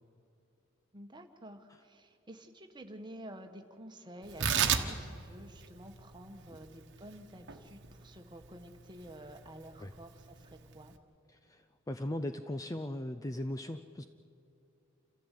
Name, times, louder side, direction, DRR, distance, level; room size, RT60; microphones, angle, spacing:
voice 1, 0.9-10.9, right 1 dB, 20° right, 5 dB, 1.4 m, -50 dB
Tearing, 4.2-11.0, right 7 dB, 55° right, 1.2 m, -36 dB
voice 2, 11.3-14.0, left 1 dB, 15° left, 9 dB, 0.5 m, -38 dB
28.5 x 14.0 x 8.3 m, 2.7 s
head